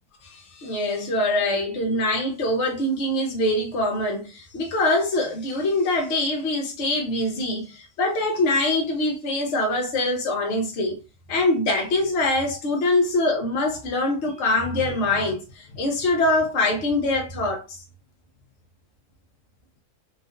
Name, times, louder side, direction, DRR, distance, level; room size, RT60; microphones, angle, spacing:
voice 1, 0.3-11.0 11.3-17.6, left 2 dB, 50° left, 1.0 m, -24 dB
3.7 x 2.3 x 2.6 m
omnidirectional pair, 1.7 m